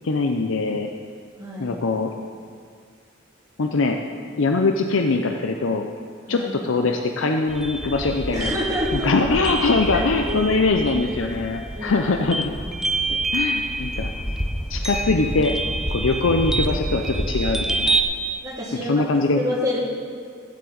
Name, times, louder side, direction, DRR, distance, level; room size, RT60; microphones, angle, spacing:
voice 1, 0.0-0.9 1.6-2.1 3.6-4.0 4.4-5.9 6.3-8.5 8.9-12.5 13.1-14.1 14.7-15.5 15.9-18.0 18.8-19.4, left 3 dB, 85° left, 4 dB, 0.6 m, -22 dB
voice 2, 1.4-1.8 6.3-6.5 8.3-9.3 9.9-10.4 11.8-12.0 18.4-19.1 19.4-19.8, left 1 dB, 20° right, -5 dB, 2.4 m, -28 dB
sound 1, 7.5-18.0, right 1 dB, 5° right, 0.5 m, -27 dB
15.5 x 9.6 x 4.0 m, 2.1 s
head